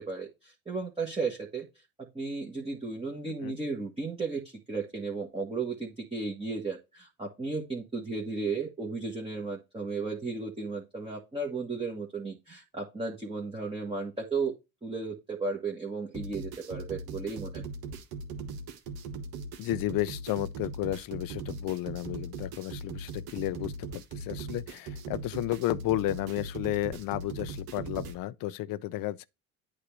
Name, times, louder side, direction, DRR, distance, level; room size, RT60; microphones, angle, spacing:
voice 1, 0.0-1.7 2.0-14.5 14.8-17.6, right 4 dB, 15° right, 1.6 m, -34 dB
sound 1, 16.1-28.1, right 3 dB, 60° right, 1.3 m, -40 dB
voice 2, 19.6-29.2, left 15 dB, 55° left, 0.6 m, -32 dB
8.4 x 2.9 x 6.3 m
hypercardioid pair, 65°, 41 cm